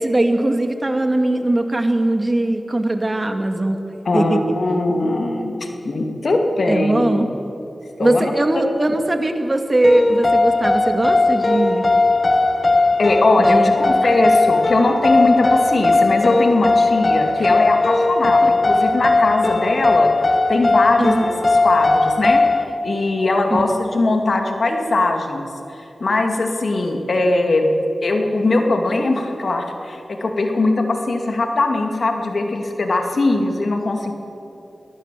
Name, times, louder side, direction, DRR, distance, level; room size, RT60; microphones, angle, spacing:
voice 1, 0.0-3.8 4.1-4.4 6.7-7.3 8.0-11.8 13.5-13.9 17.4-17.5 18.4-18.5 21.0-21.3 23.5-23.6, right 1 dB, 35° right, 6 dB, 2.3 m, -20 dB
voice 2, 4.0-7.4 8.0-8.3 13.0-20.1 20.5-21.3 21.6-22.4 22.8-27.7 28.0-34.1, left 2 dB, 70° left, 4 dB, 2.4 m, -20 dB
sound 1, 9.8-22.6, left 3 dB, 50° left, 1.8 m, -17 dB
23.0 x 18.0 x 7.6 m, 2.9 s
cardioid pair, 40°, 0 cm